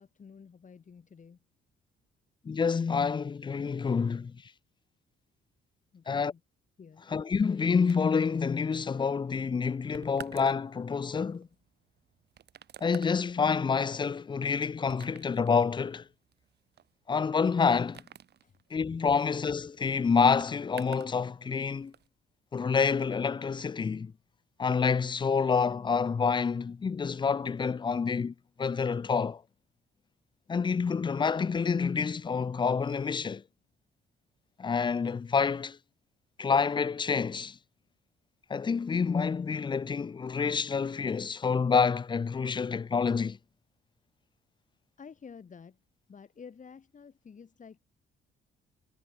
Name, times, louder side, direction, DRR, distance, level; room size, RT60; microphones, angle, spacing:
voice 1, 0.0-1.4 5.9-6.4 6.8-7.0 18.4-18.5 45.0-45.8 46.1-47.8, left 6 dB, 40° left, 2.9 m, -50 dB
voice 2, 2.5-4.3 6.1-6.3 7.1-11.5 12.8-16.0 17.1-18.0 18.7-21.9 22.5-24.1 24.6-28.3 28.6-29.4 30.5-33.4 34.6-35.8 36.4-37.6 38.5-43.4, left 5 dB, 25° left, 0.5 m, -28 dB
sound 1, 7.9-21.2 21.4-22.1, right 9 dB, 55° right, 1.2 m, -51 dB
cardioid pair, 90°, 20 cm